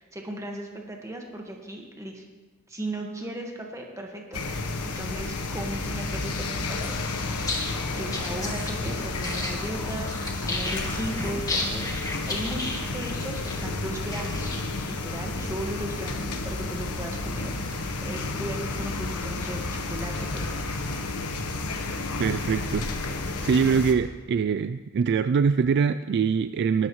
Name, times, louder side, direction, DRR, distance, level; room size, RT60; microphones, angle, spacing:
voice 1, 0.0-2.2 2.7-4.4 4.8-7.5 7.9-20.8, right 1 dB, 15° right, 1 dB, 1.6 m, -37 dB
sound 1, 4.3-23.9, left 3 dB, 85° left, 1.2 m, -31 dB
sound 2, 7.5-14.9, left 2 dB, 15° left, 1.5 m, -34 dB
voice 2, 22.2-23.2 23.4-26.9, right 6 dB, 50° right, 12 dB, 0.3 m, -24 dB
18.5 x 12.0 x 3.1 m, 1.2 s
head